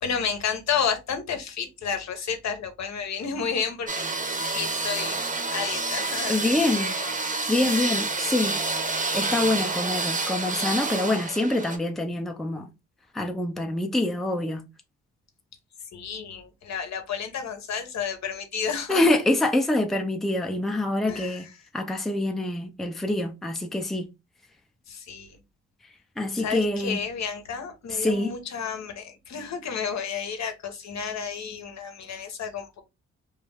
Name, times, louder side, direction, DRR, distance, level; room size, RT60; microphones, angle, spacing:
voice 1, 0.0-4.0 4.4-5.2 5.5-8.3 15.9-19.0 21.1-21.4 24.9-25.4 26.4-32.8, left 6 dB, 55° left, 0.8 m, -31 dB
sound 1, 3.9-11.8, right 3 dB, 25° right, 0.8 m, -28 dB
voice 2, 6.3-6.9 7.5-8.6 9.1-12.7 13.1-14.6 18.9-21.5 21.7-24.1 26.2-27.0 27.9-28.3, left 2 dB, ahead, 0.5 m, -25 dB
2.3 x 2.1 x 3.3 m
hypercardioid pair, 45°, 32 cm